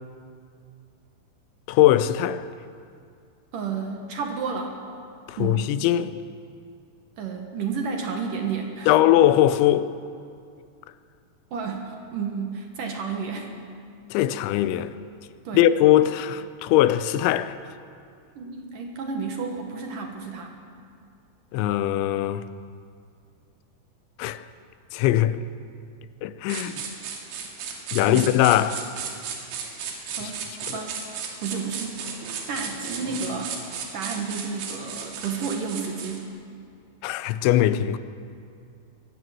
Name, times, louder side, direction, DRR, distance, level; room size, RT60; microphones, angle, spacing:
voice 1, 1.7-2.4 5.3-6.1 8.9-9.9 14.1-14.9 15.5-17.6 21.5-22.4 24.2-24.4 24.9-25.4 26.2-26.8 27.9-28.8 30.2-30.3 30.7-30.8 37.0-38.0, left 13 dB, 90° left, 3.1 m, -21 dB
voice 2, 3.5-4.8 5.4-5.6 7.2-8.9 11.5-13.5 15.4-15.7 18.4-20.6 26.5-26.7 28.1-28.2 30.2-30.4 30.7-31.0 31.4-32.0 32.5-33.6 33.9-36.3, right 5 dB, 60° right, 2.6 m, -31 dB
sound 1, 26.5-36.2, right 6 dB, 90° right, 4.6 m, -35 dB
22.5 x 15.5 x 7.7 m
omnidirectional pair, 5.2 m